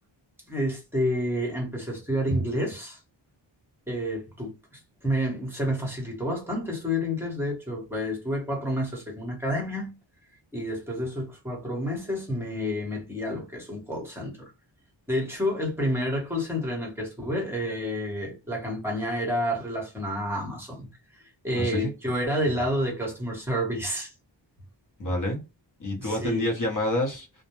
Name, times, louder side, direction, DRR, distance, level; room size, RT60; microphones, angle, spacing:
voice 1, 0.5-3.0 3.9-4.5 5.0-9.9 10.5-14.5 15.1-24.1 26.0-26.5, equal, 5° right, 0.9 m, -29 dB
voice 2, 21.5-21.9 25.0-25.4 25.8-27.3, left 1 dB, 40° left, 0.9 m, -28 dB
2.2 x 2.1 x 2.8 m
wide cardioid pair, 150°, 47 cm